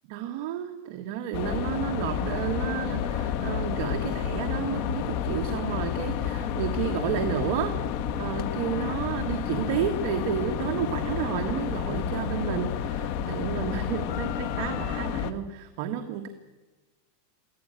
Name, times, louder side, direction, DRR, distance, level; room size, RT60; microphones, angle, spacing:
voice 1, 0.1-7.8 8.2-16.3, right 9 dB, 50° right, 5 dB, 1.5 m, -31 dB
sound 1, 1.3-15.3, left 8 dB, 45° left, 1.3 m, -30 dB
24.0 x 16.0 x 9.0 m, 1.2 s
supercardioid pair, 165°, 0 cm